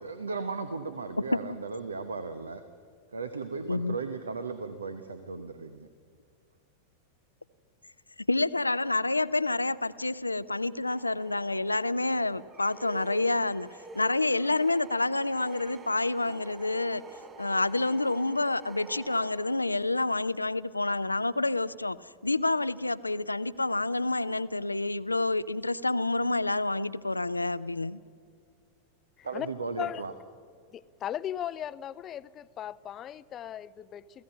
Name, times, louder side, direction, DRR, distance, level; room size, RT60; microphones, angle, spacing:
voice 1, 0.0-2.6 3.1-5.9 29.2-30.1, right 4 dB, 75° right, 1.0 m, -36 dB
voice 2, 3.7-4.0 8.2-13.7 13.9-17.0 17.4-22.0 22.2-28.0, left 2 dB, 85° left, 0.5 m, -28 dB
sound 1, 10.8-19.9, right 3 dB, 25° right, 3.9 m, -48 dB
voice 3, 30.7-34.2, left 10 dB, 30° left, 0.5 m, -37 dB
29.0 x 16.5 x 5.5 m
figure-of-eight pair, 90°, 0 cm